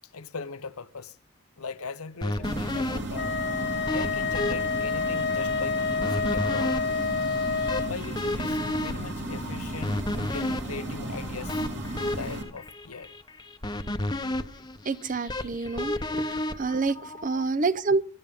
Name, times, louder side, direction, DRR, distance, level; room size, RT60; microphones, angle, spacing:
voice 1, 0.1-1.2 1.6-3.3 3.9-6.8 7.8-11.7 12.0-13.1, left 4 dB, 90° left, 0.9 m, -39 dB
sound 1, 2.2-17.4, left 1 dB, 20° left, 0.9 m, -33 dB
sound 2, 2.4-12.4, right 1 dB, 50° right, 3.2 m, -35 dB
Wind instrument woodwind instrument, 3.1-8.0, left 5 dB, 50° left, 0.8 m, -28 dB
voice 2, 14.9-16.3 16.6-18.0, right 3 dB, 35° right, 0.7 m, -27 dB
23.0 x 12.0 x 3.7 m
head